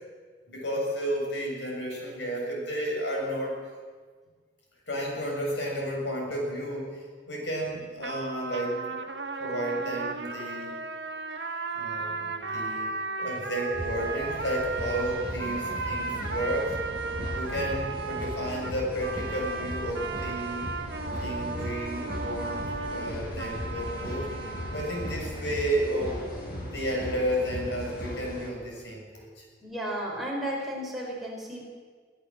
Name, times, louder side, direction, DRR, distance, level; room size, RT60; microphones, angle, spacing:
voice 1, 0.5-3.6 4.9-9.0 9.4-10.8 11.8-16.8 17.3-20.7 21.2-24.2 24.7-29.4, equal, 75° left, -1 dB, 7.4 m, -32 dB
sound 1, 8.0-25.2, right 4 dB, 70° right, 1.8 m, -35 dB
sound 2, 13.7-28.5, equal, 55° left, 7.8 m, -37 dB
voice 2, 29.6-31.7, right 1 dB, ahead, -3 dB, 4.9 m, -34 dB
23.0 x 15.5 x 7.6 m, 1.5 s
head